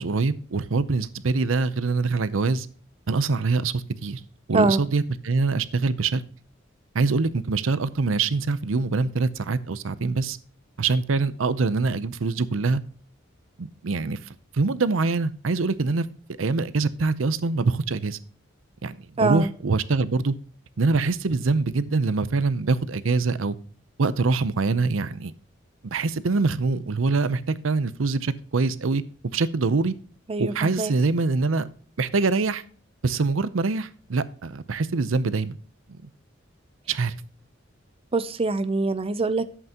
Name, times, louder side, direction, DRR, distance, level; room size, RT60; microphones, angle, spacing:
voice 1, 0.0-2.7 3.1-4.2 4.5-6.2 6.9-10.4 10.8-12.8 13.6-14.2 14.5-16.0 16.4-18.2 18.8-20.3 20.8-23.6 24.0-25.3 25.9-29.0 29.3-29.9 30.4-31.7 32.0-32.6 33.0-35.6 35.9-36.0 36.9-37.1, right 3 dB, 85° right, 16 dB, 0.6 m, -24 dB
voice 2, 4.5-4.8 19.2-19.5 30.3-30.9 38.1-39.5, right 3 dB, 30° right, 12 dB, 0.5 m, -24 dB
11.0 x 8.0 x 2.9 m, 0.43 s
head